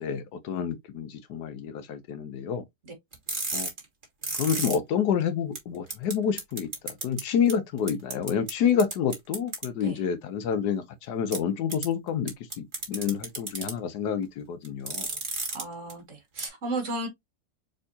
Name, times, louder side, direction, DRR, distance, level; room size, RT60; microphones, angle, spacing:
voice 1, 0.0-2.6 3.5-3.7 4.4-6.7 7.0-15.1, left 7 dB, 70° left, 1.2 m, -28 dB
sound 1, 3.1-4.8 5.2-5.3 5.6-5.7 5.9-6.1 6.4-7.2 7.5-7.6 7.9-8.5 8.8-9.6 11.3-11.4 11.7-11.9 12.3-13.7 14.6-15.6 15.9-16.0 16.4-16.5, right 3 dB, 30° right, 1.5 m, -31 dB
voice 2, 15.5-17.1, right 2 dB, 45° right, 1.8 m, -34 dB
4.3 x 3.7 x 2.7 m
omnidirectional pair, 1.9 m